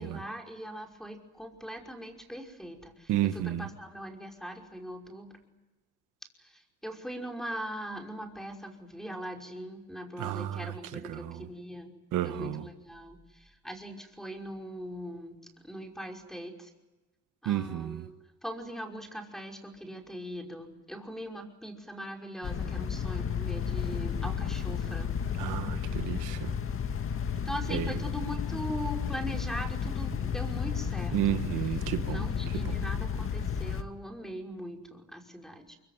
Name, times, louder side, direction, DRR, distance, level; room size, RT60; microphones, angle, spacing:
voice 1, 0.0-5.4 6.4-11.9 12.2-16.7 17.4-18.2 18.4-25.3 27.4-31.4 32.0-35.8, equal, ahead, 5.6 m, -41 dB
voice 2, 3.1-3.7 10.2-11.5 12.1-12.6 17.4-18.1 25.4-26.5 27.7-28.0 31.1-32.8, right 12 dB, 90° right, 1.3 m, -32 dB
sound 1, 22.4-33.8, left 7 dB, 45° left, 2.1 m, -32 dB
24.0 x 24.0 x 9.5 m
cardioid pair, 90°, 30 cm